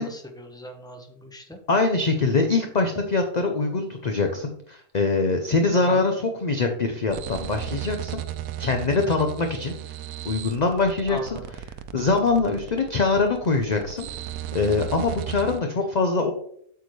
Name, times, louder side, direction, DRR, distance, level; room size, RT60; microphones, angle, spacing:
voice 1, 0.0-1.6 5.7-6.0 11.1-11.4, left 1 dB, 5° left, 3 dB, 1.0 m, -39 dB
voice 2, 1.7-8.2 8.6-9.9 10.2-11.3 11.9-14.1 14.5-16.3, left 3 dB, 40° left, 5 dB, 0.6 m, -23 dB
sound 1, 7.1-15.6, right 11 dB, 85° right, 1.0 m, -35 dB
8.1 x 7.0 x 3.2 m, 0.66 s
omnidirectional pair, 1.5 m